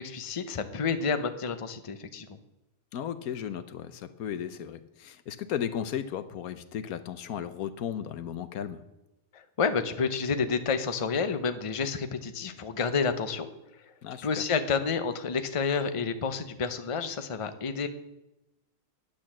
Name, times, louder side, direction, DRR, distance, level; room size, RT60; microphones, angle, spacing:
voice 1, 0.0-2.4 9.3-13.5 14.2-17.9, left 5 dB, 30° left, 10 dB, 0.7 m, -29 dB
voice 2, 2.9-8.8 14.0-14.5, left 9 dB, 90° left, 13 dB, 1.3 m, -35 dB
10.0 x 8.9 x 7.4 m, 0.95 s
omnidirectional pair, 1.5 m